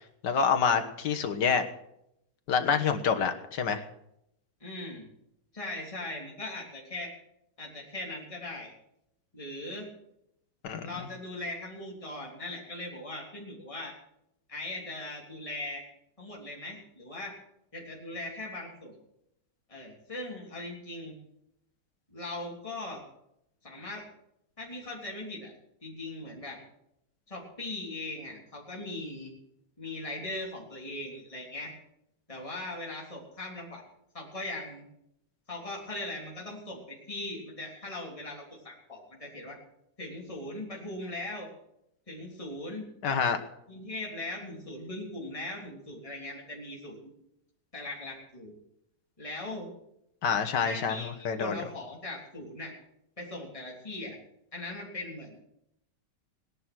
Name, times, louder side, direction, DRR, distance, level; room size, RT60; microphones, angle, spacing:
voice 1, 0.2-1.7 2.5-3.8 10.6-11.1 43.0-43.4 50.2-51.6, left 6 dB, 85° left, 7 dB, 1.9 m, -27 dB
voice 2, 4.6-5.1 5.5-7.1 7.6-8.7 9.3-9.9 10.8-13.9 14.5-15.8 16.2-17.3 17.7-18.9 19.7-21.1 22.1-23.0 23.6-24.0 24.6-25.5 25.8-26.6 27.3-29.3 29.8-31.7 32.3-33.8 34.1-34.8 35.5-39.6 40.0-41.5 42.1-42.9 43.7-47.0 47.7-48.5 49.2-49.7 50.6-52.7 53.2-54.2 54.5-55.4, left 2 dB, 20° left, -2 dB, 3.5 m, -39 dB
18.0 x 11.0 x 6.2 m, 0.78 s
omnidirectional pair, 1.8 m